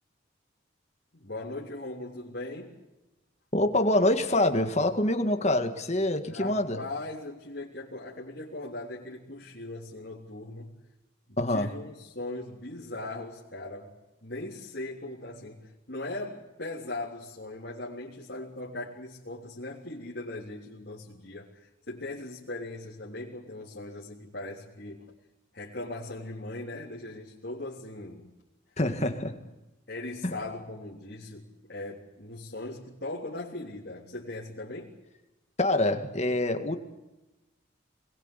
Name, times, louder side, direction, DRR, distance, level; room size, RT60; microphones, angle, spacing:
voice 1, 1.1-2.8 6.3-10.7 11.3-13.9 14.2-25.1 25.5-28.4 29.9-34.9, left 2 dB, 55° left, 3.7 m, -39 dB
voice 2, 3.5-6.8 11.4-11.8 28.8-29.4 30.2-30.3 35.6-36.8, left 1 dB, 35° left, 2.0 m, -25 dB
27.0 x 21.5 x 8.3 m
head